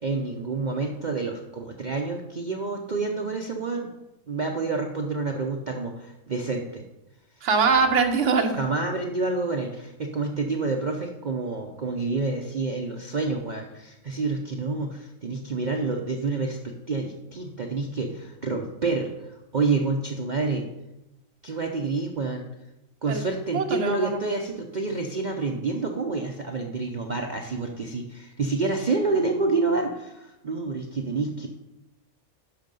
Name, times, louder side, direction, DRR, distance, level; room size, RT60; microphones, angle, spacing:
voice 1, 0.0-3.9 4.3-6.8 8.5-20.7 21.4-22.5 23.0-31.5, right 3 dB, 40° right, 2 dB, 0.7 m, -28 dB
voice 2, 7.4-8.6 23.1-23.2 23.5-24.1, right 5 dB, 60° right, 4 dB, 1.4 m, -22 dB
10.5 x 6.5 x 5.3 m, 0.94 s
omnidirectional pair, 1.4 m